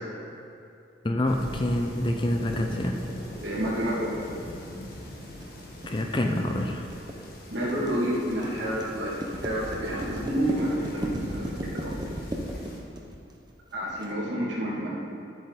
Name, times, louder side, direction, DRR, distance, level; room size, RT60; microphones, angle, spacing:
voice 1, 1.0-3.0 5.8-6.8, left 1 dB, 25° left, 3 dB, 0.6 m, -27 dB
sound 1, 1.2-12.8, equal, 50° left, 1.4 m, -43 dB
sound 2, 2.5-14.1, equal, 20° right, 0.8 m, -36 dB
voice 2, 3.4-4.1 7.5-9.2 9.4-11.9 13.7-14.9, right 1 dB, 70° right, -6 dB, 2.4 m, -29 dB
11.0 x 7.8 x 4.2 m, 2.6 s
head